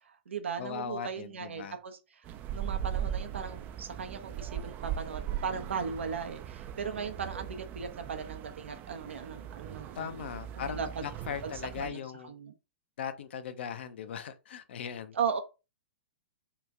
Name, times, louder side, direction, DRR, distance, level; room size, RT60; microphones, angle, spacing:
voice 1, 0.0-10.2 10.5-11.1 11.4-11.5 11.8-12.5 15.1-15.4, right 6 dB, 80° right, 0.7 m, -37 dB
voice 2, 0.6-1.8 10.0-12.3 13.0-15.2, left 7 dB, 65° left, 0.6 m, -39 dB
sound 1, 2.2-11.9, right 10 dB, 30° right, 0.3 m, -39 dB
2.9 x 2.5 x 3.4 m
hypercardioid pair, 120°, 7 cm